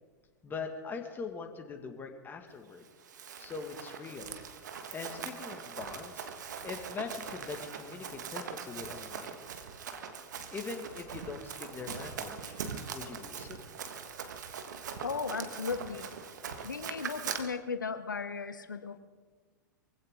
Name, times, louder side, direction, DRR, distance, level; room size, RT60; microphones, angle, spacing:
voice 1, 0.4-2.9 3.4-4.3 4.9-6.3 6.6-9.4 10.5-12.6 12.9-13.6, left 4 dB, 20° left, 4 dB, 2.1 m, -42 dB
Run, 2.8-17.4, right 6 dB, 70° right, 1.5 m, -42 dB
voice 2, 15.0-16.1 16.6-19.0, left 5 dB, 85° left, 11 dB, 1.1 m, -36 dB
23.5 x 16.0 x 3.8 m, 1.4 s
figure-of-eight pair, 100°, 10 cm